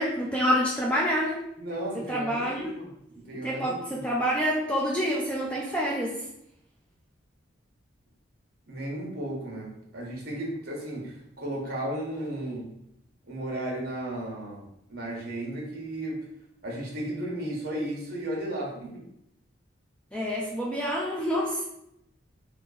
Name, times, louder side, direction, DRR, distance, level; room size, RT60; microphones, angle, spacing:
voice 1, 0.0-1.4 1.9-2.7 3.3-6.2 20.1-21.6, equal, 5° left, -4 dB, 0.4 m, -27 dB
voice 2, 1.6-4.0 8.7-12.7 13.3-16.3 16.6-19.1, right 1 dB, 50° right, -2 dB, 1.3 m, -34 dB
3.7 x 2.7 x 4.0 m, 0.78 s
head